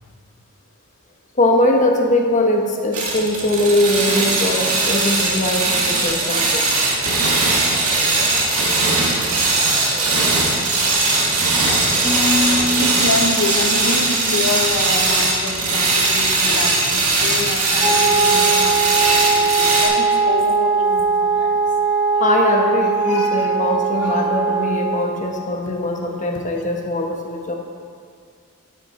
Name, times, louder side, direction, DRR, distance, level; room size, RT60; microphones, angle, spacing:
voice 1, 1.4-6.7 15.3-15.4 22.2-27.5, left 1 dB, 35° left, 1 dB, 1.1 m, -20 dB
sound 1, 2.9-19.9, right 3 dB, 75° right, 2.0 m, -19 dB
sound 2, 6.0-13.8, left 2 dB, 10° left, 1.6 m, -30 dB
voice 2, 12.8-21.6 22.7-24.5 26.3-26.4, left 3 dB, 85° left, 3 dB, 1.1 m, -27 dB
Wind instrument woodwind instrument, 17.8-25.2, right 4 dB, 30° right, 2.2 m, -19 dB
10.0 x 9.6 x 4.2 m, 2.1 s
head